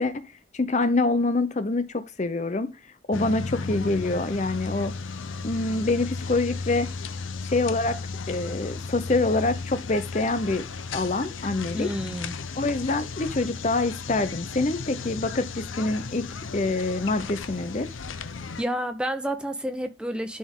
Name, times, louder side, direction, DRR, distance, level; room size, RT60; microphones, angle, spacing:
voice 1, 0.0-1.9 2.2-2.7 3.1-4.9 5.4-6.9 7.4-8.0 8.3-10.6 10.9-11.9 12.6-16.2 16.5-18.0, left 2 dB, 35° left, 0.6 m, -26 dB
sound 1, 3.1-18.6, left 4 dB, 90° left, 0.7 m, -35 dB
voice 2, 11.7-12.4 18.6-20.4, equal, 5° right, 0.8 m, -30 dB
11.5 x 4.3 x 3.7 m
head